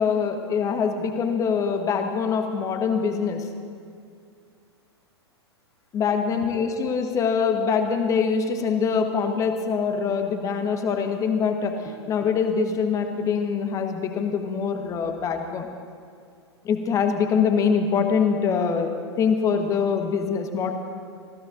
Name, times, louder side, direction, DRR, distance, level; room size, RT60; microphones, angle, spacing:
voice 1, 0.0-3.5 5.9-15.7 16.6-18.9 19.2-20.7, left 6 dB, 20° left, 5 dB, 1.3 m, -24 dB
26.5 x 15.5 x 2.6 m, 2.3 s
figure-of-eight pair, 100°, 14 cm